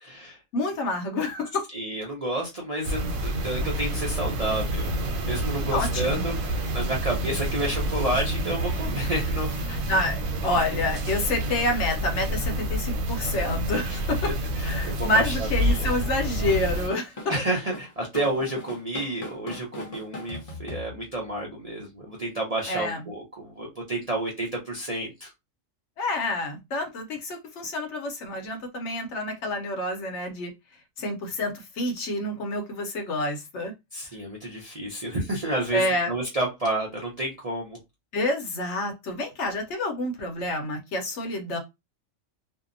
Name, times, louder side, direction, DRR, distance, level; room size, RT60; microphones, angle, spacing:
voice 1, 0.0-0.4 1.7-4.9 5.2-9.7 13.9-14.0 14.2-15.9 17.3-25.3 33.9-37.8, right 1 dB, 45° right, 0.5 m, -30 dB
voice 2, 0.5-1.6 5.7-6.2 9.7-14.3 14.6-17.1 22.7-23.0 26.0-30.5 31.0-33.7 35.7-36.1 38.1-41.6, left 1 dB, 65° left, 0.9 m, -28 dB
sound 1, 2.8-16.9, right 1 dB, 85° right, 1.1 m, -28 dB
Drum kit / Drum, 16.5-21.3, left 1 dB, 35° left, 0.6 m, -39 dB
2.7 x 2.0 x 2.5 m
omnidirectional pair, 1.4 m